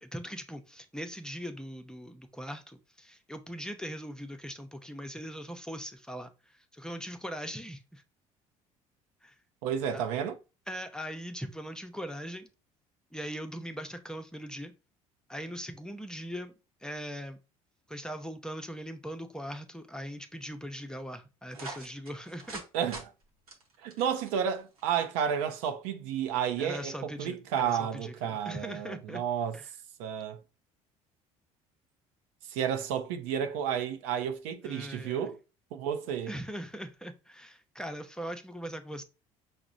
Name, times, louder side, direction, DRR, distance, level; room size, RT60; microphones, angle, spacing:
voice 1, 0.0-6.3 6.7-8.0 9.2-9.3 9.9-10.0 10.7-12.5 13.1-14.7 15.3-16.5 16.8-17.4 17.9-22.6 26.6-29.2 29.5-29.7 34.6-35.3 36.3-39.0, equal, 5° left, 0.6 m, -40 dB
voice 2, 9.6-10.4 22.7-23.1 23.8-29.6 30.0-30.4 32.5-35.4 35.7-36.3, right 8 dB, 70° right, 0.6 m, -31 dB
sound 1, 21.5-22.7 22.9-23.0 23.5-24.8, right 3 dB, 90° right, 0.9 m, -43 dB
5.8 x 2.1 x 2.5 m
hypercardioid pair, 60°, 18 cm